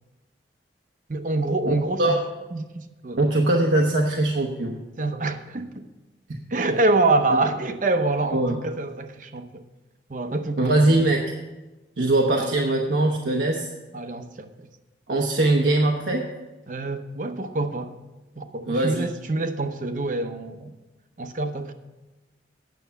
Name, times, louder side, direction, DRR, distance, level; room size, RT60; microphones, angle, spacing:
voice 1, 1.1-2.2 2.5-3.2 5.0-5.9 6.5-9.6 10.1-10.7 12.4-12.5 13.9-14.7 16.7-17.9 18.4-20.7 21.2-21.7, right 2 dB, 45° right, 8 dB, 0.7 m, -26 dB
voice 2, 1.7-2.2 3.2-4.8 8.3-8.6 10.6-11.2 12.0-13.7 15.1-16.2 18.7-19.1, right 2 dB, 85° right, 0 dB, 0.9 m, -21 dB
9.2 x 7.0 x 6.8 m, 1.1 s
head